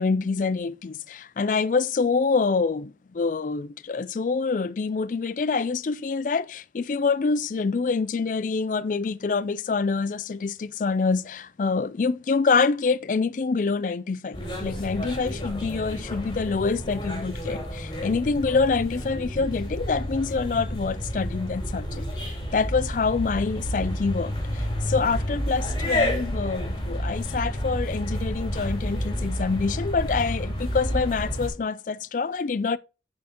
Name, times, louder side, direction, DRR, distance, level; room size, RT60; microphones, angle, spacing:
voice 1, 0.0-32.8, left 4 dB, 45° left, 0.4 m, -26 dB
sound 1, 14.3-31.5, equal, 25° left, 3.6 m, -30 dB
8.5 x 5.9 x 2.9 m
head